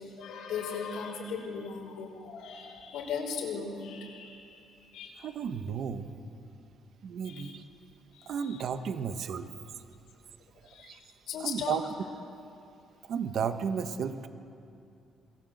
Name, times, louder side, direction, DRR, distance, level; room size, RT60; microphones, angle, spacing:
voice 1, 0.0-5.3 7.2-7.5 8.1-8.6 10.7-11.0 11.3-11.8, left 6 dB, 80° left, 1 dB, 5.4 m, -38 dB
voice 2, 5.2-6.1 7.0-7.6 8.3-9.5 10.8-11.0 11.4-11.8 13.1-14.3, right 7 dB, 55° right, 9 dB, 1.4 m, -33 dB
27.5 x 22.5 x 8.0 m, 2.6 s
cardioid pair, 150°, 0 cm